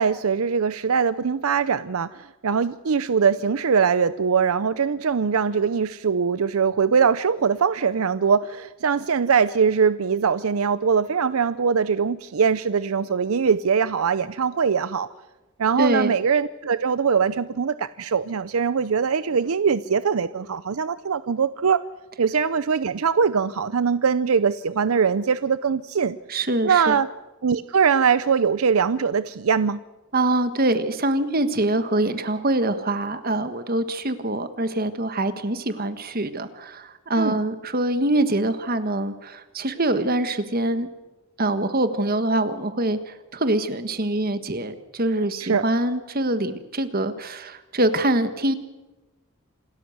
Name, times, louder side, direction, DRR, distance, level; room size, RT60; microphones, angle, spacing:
voice 1, 0.0-15.1 15.6-21.8 22.2-26.2 26.6-27.1 27.4-29.8 37.2-37.4 45.4-45.6, right 6 dB, 85° right, 15 dB, 0.6 m, -22 dB
voice 2, 15.8-16.1 26.3-27.0 30.1-40.9 41.4-48.5, right 1 dB, 45° right, 10 dB, 1.5 m, -24 dB
27.5 x 13.5 x 7.9 m, 1.1 s
head